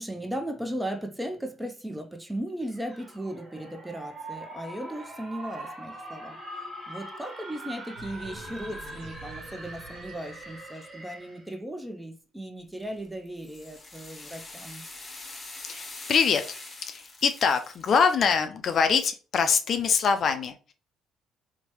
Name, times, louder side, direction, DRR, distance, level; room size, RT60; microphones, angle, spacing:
voice 1, 0.0-6.4 6.9-14.9, right 1 dB, 5° right, 0.5 m, -36 dB
sound 1, 2.6-11.5, right 1 dB, 35° right, 1.6 m, -42 dB
sound 2, 7.9-11.2, right 2 dB, 75° right, 0.7 m, -47 dB
sound 3, 12.8-17.9, left 2 dB, 30° left, 0.8 m, -43 dB
voice 2, 15.6-16.4 16.8-20.7, left 6 dB, 55° left, 0.4 m, -24 dB
3.0 x 2.1 x 2.9 m
hypercardioid pair, 60°, 0 cm